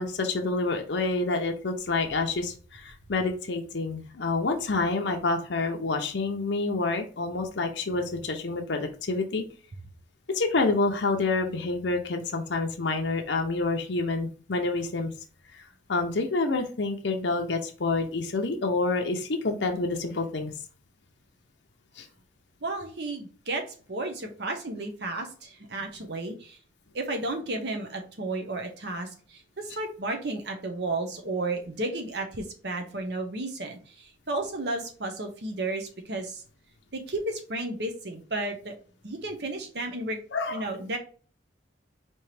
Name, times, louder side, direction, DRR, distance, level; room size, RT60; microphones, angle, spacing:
voice 1, 0.0-9.4 10.3-15.1 15.5-15.6 15.9-20.5 22.0-22.1 40.3-40.7, left 3 dB, 70° left, 4 dB, 0.7 m, -28 dB
voice 2, 22.6-23.6 23.9-26.6 26.9-36.4 36.9-38.7 39.0-40.2 40.5-41.0, right 2 dB, 60° right, 3 dB, 0.9 m, -33 dB
4.4 x 3.0 x 3.3 m, 0.40 s
head